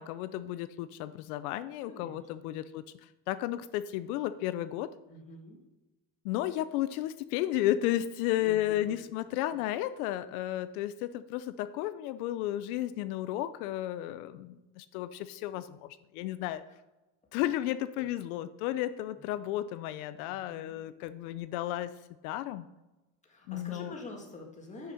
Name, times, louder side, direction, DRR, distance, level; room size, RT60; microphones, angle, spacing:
voice 1, 0.0-4.9 6.2-16.6 17.3-21.9 22.2-22.7 23.5-23.9, left 13 dB, 90° left, 14 dB, 0.6 m, -33 dB
voice 2, 1.9-2.7 5.1-5.6 8.4-8.8 9.5-9.6 17.9-18.1 20.3-20.8 23.2-24.9, left 2 dB, 15° left, 0 dB, 1.8 m, -47 dB
6.7 x 6.5 x 5.8 m, 1.1 s
cardioid pair, 130°, 43 cm